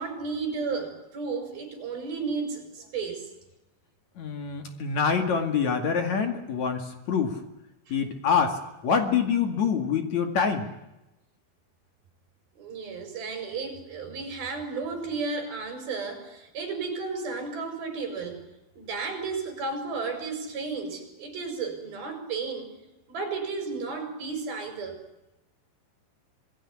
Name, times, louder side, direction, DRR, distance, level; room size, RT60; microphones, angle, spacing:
voice 1, 0.0-3.3 7.9-8.0 12.6-18.4 18.8-22.7 23.1-25.0, right 4 dB, 55° right, 6 dB, 7.2 m, -33 dB
voice 2, 4.2-7.4 7.9-10.7, left 6 dB, 45° left, 6 dB, 2.8 m, -26 dB
26.5 x 19.5 x 9.9 m, 0.97 s
omnidirectional pair, 5.3 m